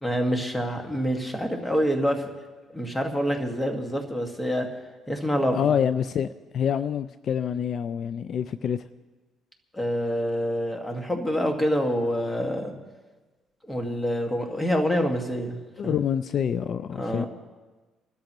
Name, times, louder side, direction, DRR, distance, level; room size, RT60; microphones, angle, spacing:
voice 1, 0.0-2.3 2.7-4.7 5.1-5.7 9.7-12.7 13.6-16.0 17.0-17.3, equal, 10° left, 3 dB, 1.8 m, -26 dB
voice 2, 5.5-8.9 15.8-17.3, left 8 dB, 50° left, 13 dB, 0.4 m, -27 dB
27.5 x 13.0 x 3.1 m, 1.2 s
cardioid pair, 120°, 0 cm